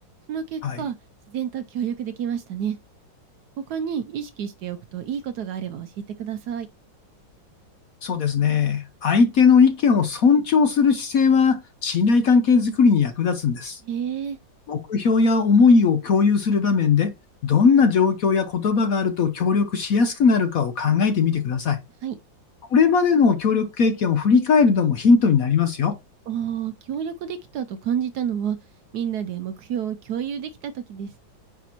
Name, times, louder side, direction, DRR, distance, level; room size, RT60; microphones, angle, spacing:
voice 1, 0.3-1.0 1.3-2.8 3.7-6.7 13.8-14.4 22.0-22.2 26.3-28.6 28.9-31.2, right 8 dB, 70° right, 1.0 m, -29 dB
voice 2, 8.0-13.8 14.7-17.1 17.4-21.8 22.7-26.0, left 5 dB, 60° left, 1.0 m, -19 dB
9.2 x 4.9 x 2.9 m
omnidirectional pair, 2.1 m